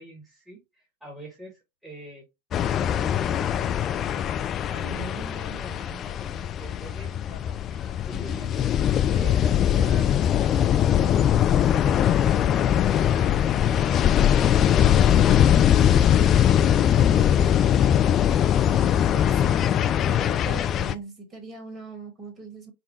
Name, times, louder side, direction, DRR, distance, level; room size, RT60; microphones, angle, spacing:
voice 1, 0.0-2.2 2.8-4.4 4.7-8.7 9.1-14.4 14.7-16.8 17.1-17.5, right 1 dB, 5° right, 1.4 m, -44 dB
sound 1, 2.5-20.9, left 10 dB, 30° left, 0.3 m, -21 dB
voice 2, 18.7-19.6 20.0-22.7, right 3 dB, 25° right, 1.8 m, -41 dB
5.0 x 2.3 x 3.1 m
figure-of-eight pair, 90°, 0 cm